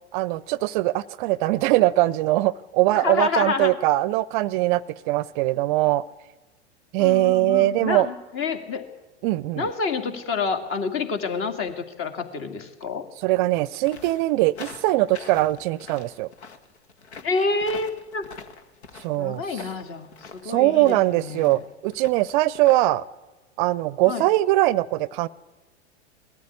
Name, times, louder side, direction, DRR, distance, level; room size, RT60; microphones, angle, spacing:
voice 1, 0.1-6.0 6.9-8.1 9.2-9.7 13.2-16.3 19.0-19.4 20.5-23.0 23.6-25.3, right 17 dB, 50° right, 21 dB, 0.6 m, -21 dB
voice 2, 2.9-3.8 7.0-8.8 9.6-13.1 17.2-18.3 19.2-21.6 24.1-24.2, left 4 dB, 40° left, 7 dB, 2.4 m, -28 dB
sound 1, 13.8-22.9, left 5 dB, 75° left, 1.7 m, -44 dB
19.5 x 13.5 x 9.7 m, 1.1 s
hypercardioid pair, 95°, 33 cm